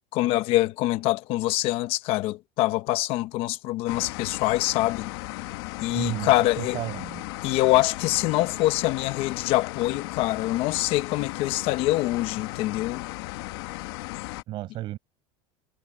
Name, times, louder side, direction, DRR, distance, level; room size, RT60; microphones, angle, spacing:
voice 1, 0.1-5.1 5.8-6.8 7.4-13.0, left 17 dB, 40° left, 1.0 m, -25 dB
sound 1, 3.9-14.4, left 20 dB, 60° left, 1.4 m, -36 dB
voice 2, 5.9-6.3 6.6-7.2 14.5-15.0, right 15 dB, 35° right, 6.4 m, -32 dB
cardioid pair, 175°, 14 cm